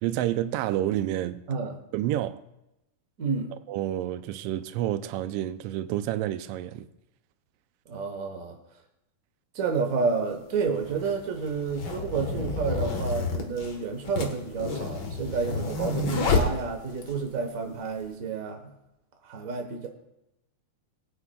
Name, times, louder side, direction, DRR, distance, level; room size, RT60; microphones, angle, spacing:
voice 1, 0.0-1.4 1.9-2.4 3.7-6.9, right 13 dB, 85° right, 1.4 m, -29 dB
voice 2, 3.2-3.5 7.9-8.6 9.5-18.7 19.2-19.9, right 5 dB, 70° right, 0.8 m, -30 dB
sound 1, 9.7-9.8 10.7-17.2, left 3 dB, 45° left, 1.5 m, -29 dB
20.0 x 9.5 x 2.3 m
omnidirectional pair, 3.3 m